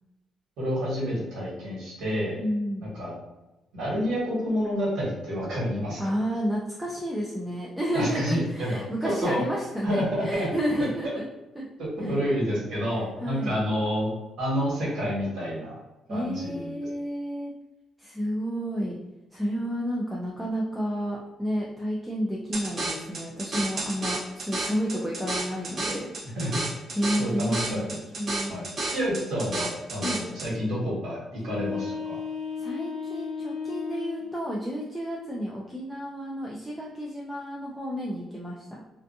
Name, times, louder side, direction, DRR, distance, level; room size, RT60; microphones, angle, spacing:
voice 1, 0.6-2.4 2.8-3.2 3.7-6.0 7.9-9.4 9.8-10.5 11.8-14.1 14.4-15.8 16.1-16.7 26.3-26.5 27.2-27.8 28.5-32.2, equal, 85° right, -6 dB, 1.3 m, -29 dB
voice 2, 2.4-2.9 6.0-11.3 11.6-11.7 12.0-12.1 13.2-13.6 16.1-17.5 18.0-18.9 19.3-26.1 26.9-27.8 28.2-28.5 30.0-30.2 32.6-38.8, equal, 5° right, -4 dB, 0.3 m, -31 dB
sound 1, 22.5-30.5, right 2 dB, 40° right, 0.7 m, -32 dB
sound 2, 31.4-34.4, left 6 dB, 90° left, 0.6 m, -34 dB
2.4 x 2.3 x 2.6 m, 1.0 s
cardioid pair, 140°, 0 cm